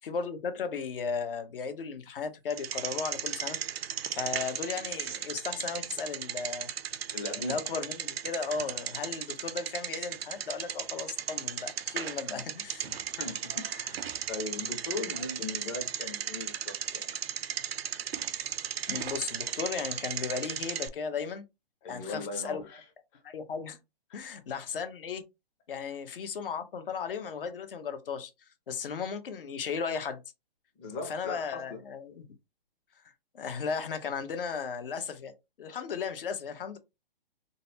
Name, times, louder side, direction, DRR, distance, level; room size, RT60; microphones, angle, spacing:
voice 1, 0.0-3.6 4.1-6.7 7.4-12.9 18.9-21.4 21.9-22.7 23.2-23.8 24.1-25.2 25.7-28.3 28.7-30.2 31.1-32.2 33.3-35.3 35.6-36.8, left 5 dB, 65° left, 0.8 m, -35 dB
Bicycle, 2.5-20.9, right 9 dB, 90° right, 0.5 m, -36 dB
voice 2, 7.1-7.6 12.3-12.4 12.8-17.2 21.8-22.8 24.1-24.2 30.8-31.8, left 3 dB, 15° left, 0.5 m, -39 dB
3.9 x 2.1 x 2.7 m
hypercardioid pair, 150°, 30 cm